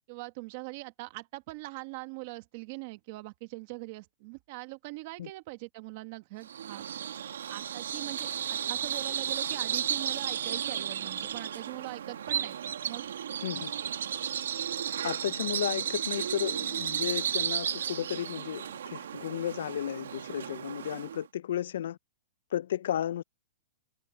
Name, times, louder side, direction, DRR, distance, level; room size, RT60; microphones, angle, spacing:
voice 1, 0.1-6.8 7.5-12.6 12.8-13.1, right 23 dB, 35° right, 1.5 m, -42 dB
Bird vocalization bird call bird song, 6.4-21.2, right 9 dB, 85° right, 1.6 m, -34 dB
voice 2, 13.4-13.7 15.0-22.0 22.5-23.2, left 11 dB, 65° left, 0.4 m, -33 dB
hypercardioid pair, 170°, 0 cm